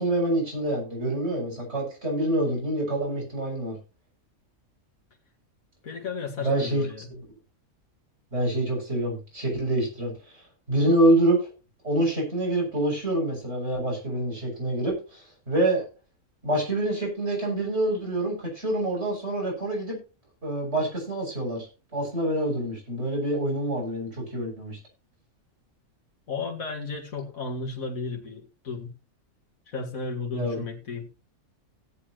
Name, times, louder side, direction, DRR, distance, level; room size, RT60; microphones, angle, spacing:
voice 1, 0.0-3.7 6.4-6.9 8.3-10.4 10.7-11.5 11.8-15.8 16.4-20.0 20.4-21.7 21.9-24.8 30.3-30.6, right 1 dB, 50° right, 7.6 m, -26 dB
voice 2, 5.8-7.1 26.3-28.9 29.7-31.1, left 4 dB, 75° left, 2.5 m, -33 dB
17.0 x 8.5 x 3.1 m
omnidirectional pair, 1.5 m